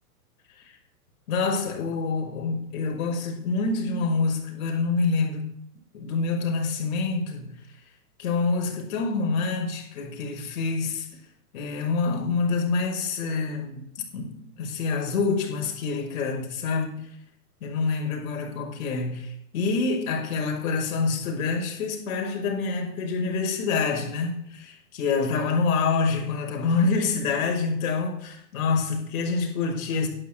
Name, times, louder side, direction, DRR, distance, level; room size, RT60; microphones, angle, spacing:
voice 1, 1.3-5.5 5.9-7.5 8.2-11.1 11.5-16.9 17.6-30.1, left 4 dB, 60° left, 5.7 m, -27 dB
12.0 x 11.0 x 8.6 m
hypercardioid pair, 135°, 47 cm